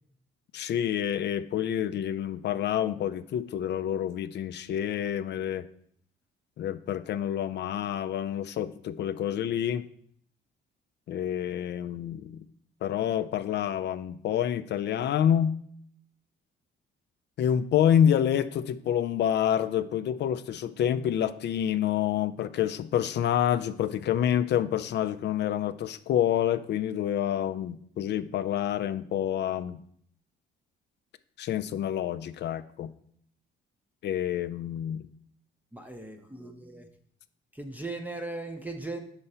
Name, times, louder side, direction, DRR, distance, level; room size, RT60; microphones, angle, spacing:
voice 1, 0.5-5.7 6.6-9.9 11.1-12.4 12.8-15.6 17.4-29.8 31.4-32.9 34.0-35.1, left 10 dB, 60° left, 12 dB, 0.4 m, -28 dB
voice 2, 35.7-36.9 37.5-39.0, right 2 dB, 10° right, 5 dB, 0.6 m, -38 dB
4.9 x 4.3 x 5.4 m, 0.63 s
cardioid pair, 90°, 20 cm